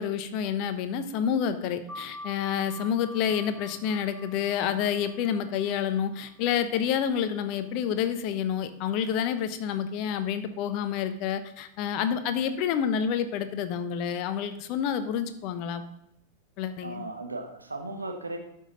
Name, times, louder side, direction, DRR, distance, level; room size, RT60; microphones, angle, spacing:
voice 1, 0.0-15.8 16.6-17.0, left 8 dB, 40° left, 10 dB, 0.9 m, -28 dB
sound 1, 1.9-7.1, equal, 5° right, 2.1 m, -46 dB
voice 2, 2.8-3.1 12.2-12.4 16.8-18.4, right 2 dB, 80° right, 3 dB, 1.3 m, -37 dB
12.0 x 5.5 x 4.0 m, 0.79 s
figure-of-eight pair, 90°, 0 cm